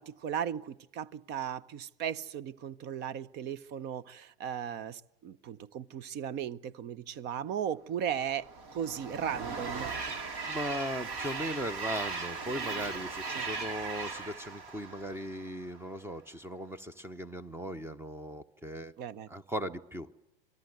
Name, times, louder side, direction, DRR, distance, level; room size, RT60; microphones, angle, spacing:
voice 1, 0.0-9.9 13.3-13.5 19.0-19.3, right 9 dB, 35° right, 20 dB, 0.8 m, -37 dB
Train, 8.2-15.7, right 4 dB, 55° right, 4.6 m, -38 dB
voice 2, 10.5-18.9 19.3-20.1, equal, 10° right, 17 dB, 0.9 m, -38 dB
26.0 x 21.0 x 8.0 m, 0.88 s
hypercardioid pair, 100°, 30 cm